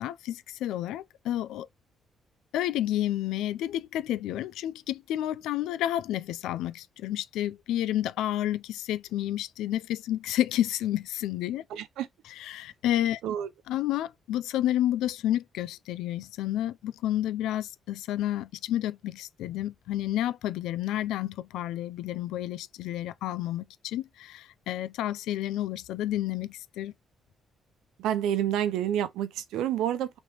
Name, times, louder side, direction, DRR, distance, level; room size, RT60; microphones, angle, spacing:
voice 1, 0.0-1.7 2.5-11.6 12.5-13.2 13.7-26.9, left 13 dB, 90° left, 0.4 m, -30 dB
voice 2, 11.7-12.1 13.2-13.5 28.0-30.2, right 10 dB, 90° right, 0.7 m, -28 dB
4.1 x 3.3 x 3.0 m
cardioid pair, 90°, 0 cm